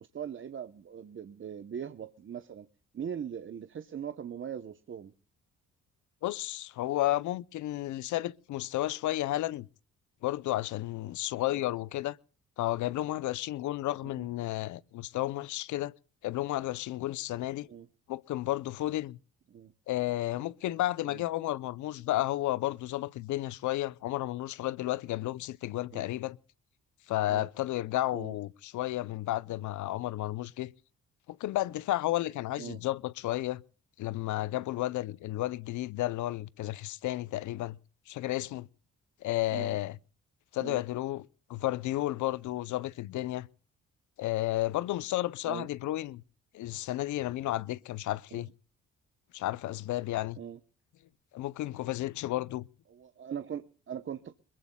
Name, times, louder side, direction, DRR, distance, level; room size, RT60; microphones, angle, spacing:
voice 1, 0.1-2.7 2.9-5.1 11.5-11.7 14.2-14.3 17.7-17.9 19.5-19.7 21.1-21.2 25.9-26.1 27.3-27.5 28.1-28.3 32.6-32.8 39.5-39.8 40.6-40.8 45.5-45.7 48.3-48.4 50.4-50.6 52.9-54.4, right 8 dB, 40° right, 0.9 m, -40 dB
voice 2, 6.2-9.7 10.2-12.2 12.6-15.9 16.2-17.7 18.1-19.2 19.9-26.4 27.1-30.7 31.3-33.6 34.0-37.8 38.1-38.7 39.2-40.0 40.5-43.5 44.2-46.2 46.5-48.5 49.3-50.4 51.3-52.7, left 15 dB, 75° left, 0.6 m, -32 dB
22.0 x 21.5 x 2.3 m
cardioid pair, 90°, 30 cm